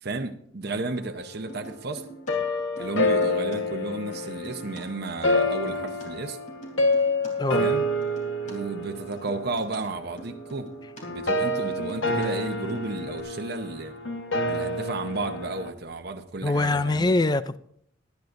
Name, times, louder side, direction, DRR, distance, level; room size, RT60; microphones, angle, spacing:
voice 1, 0.0-2.0 2.8-6.4 7.6-7.8 8.4-10.7 11.1-13.9 14.5-17.1, right 3 dB, 55° right, 0.9 m, -33 dB
sound 1, 1.5-2.3 2.6-3.6 3.8-6.1 6.3-8.5 8.8-12.3 12.5-13.2, right 2 dB, 40° left, 3.2 m, -45 dB
sound 2, 2.3-15.7, left 1 dB, 85° left, 1.4 m, -28 dB
voice 2, 16.4-17.6, left 2 dB, 20° left, 0.4 m, -23 dB
18.5 x 11.5 x 2.6 m
head